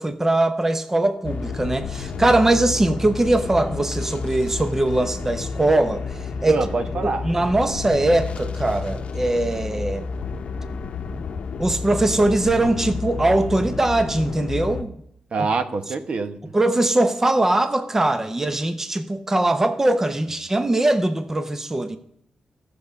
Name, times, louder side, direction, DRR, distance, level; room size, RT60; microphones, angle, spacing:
voice 1, 0.0-6.0 6.4-6.6 7.0-10.1 11.6-14.9 15.4-15.5 16.5-22.0, right 2 dB, 20° right, 9 dB, 0.7 m, -21 dB
sound 1, 1.2-14.8, left 4 dB, 65° left, 0.7 m, -30 dB
voice 2, 6.5-7.3 15.3-16.4, right 3 dB, 55° right, 9 dB, 1.0 m, -24 dB
15.0 x 6.9 x 5.3 m, 0.77 s
cardioid pair, 95°, 2 cm